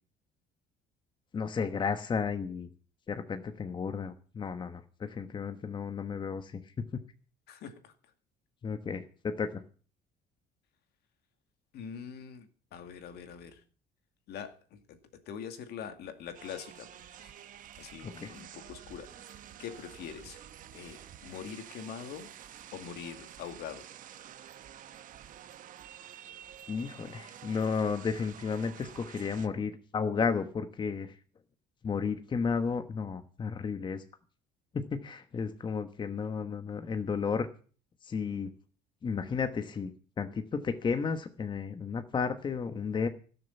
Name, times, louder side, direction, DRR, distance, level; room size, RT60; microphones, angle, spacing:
voice 1, 1.3-2.7 3.1-7.0 8.6-9.6 18.0-18.3 26.7-31.2 31.8-34.0 34.7-37.5 38.0-38.5 39.0-39.9 40.2-43.1, left 5 dB, 25° left, 1.2 m, -33 dB
voice 2, 7.5-7.9 11.7-13.6 14.3-17.3 17.8-19.3 19.6-20.4 20.7-22.3 22.7-23.9, left 7 dB, 65° left, 2.3 m, -44 dB
sound 1, 16.3-29.5, right 10 dB, 50° right, 1.0 m, -50 dB
17.0 x 6.9 x 8.2 m
cardioid pair, 145°, 18 cm